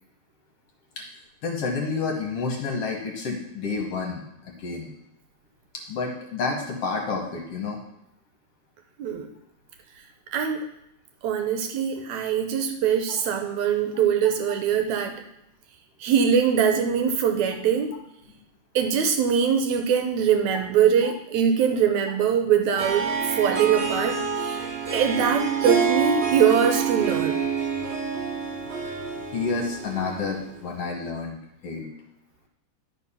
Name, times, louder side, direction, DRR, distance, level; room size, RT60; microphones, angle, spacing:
voice 1, 1.4-4.9 5.9-7.8 21.0-21.1 29.3-31.9, left 4 dB, 60° left, 1 dB, 1.9 m, -30 dB
voice 2, 10.3-10.7 11.2-15.2 16.0-17.9 18.8-24.6 24.9-27.4, right 7 dB, 75° right, 4 dB, 1.9 m, -22 dB
Harp, 22.8-30.5, right 6 dB, 45° right, 1.8 m, -27 dB
10.5 x 4.5 x 5.5 m, 0.82 s
omnidirectional pair, 3.6 m